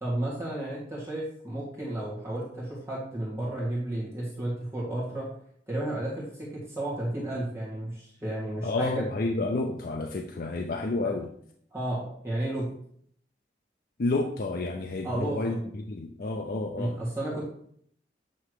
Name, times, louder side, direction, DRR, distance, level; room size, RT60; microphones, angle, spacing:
voice 1, 0.0-5.3 5.7-9.0 11.0-11.1 11.7-12.7 15.0-15.6 16.8-17.4, right 1 dB, 15° right, -6 dB, 1.7 m, -32 dB
voice 2, 8.6-11.3 14.0-17.0, left 2 dB, 50° left, 3 dB, 0.5 m, -30 dB
7.8 x 3.4 x 4.8 m, 0.64 s
head